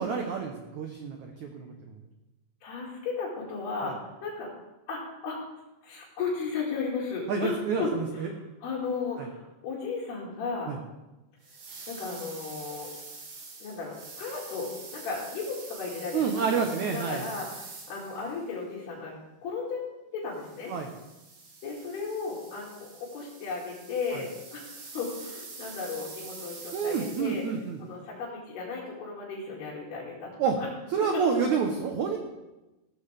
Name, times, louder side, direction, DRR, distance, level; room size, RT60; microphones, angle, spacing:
voice 1, 0.0-2.0 3.8-3.9 7.3-8.3 9.2-9.3 10.7-10.8 16.1-17.2 20.7-20.9 24.1-24.2 26.7-27.8 30.4-30.6 30.9-32.2, right 6 dB, 85° right, 3 dB, 1.7 m, -29 dB
voice 2, 2.6-4.5 4.9-5.4 5.8-8.3 8.6-10.7 11.9-12.9 13.6-17.5 17.9-19.1 19.4-19.9 20.1-20.7 21.6-27.4 27.8-30.3, left 4 dB, 70° left, -6 dB, 4.3 m, -35 dB
sound 1, 11.4-18.4 20.3-27.6, right 4 dB, 50° right, 3.6 m, -45 dB
16.0 x 13.0 x 3.4 m, 1.0 s
omnidirectional pair, 4.9 m